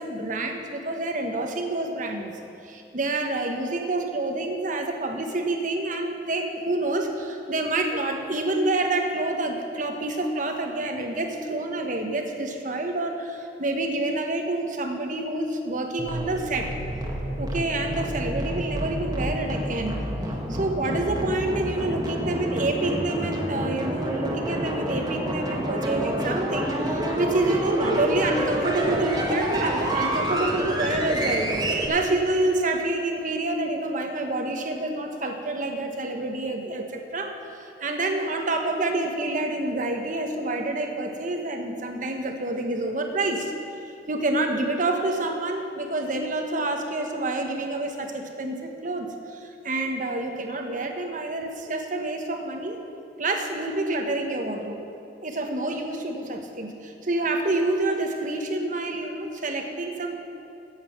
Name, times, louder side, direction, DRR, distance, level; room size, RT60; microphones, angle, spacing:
voice 1, 0.0-16.7 17.4-20.0 20.5-31.5 31.9-43.5 44.1-52.8 53.2-54.8 55.2-60.2, right 2 dB, 50° right, 4 dB, 1.2 m, -28 dB
sound 1, 16.0-31.9, right 1 dB, 25° right, 1.6 m, -28 dB
14.0 x 8.6 x 5.9 m, 2.6 s
head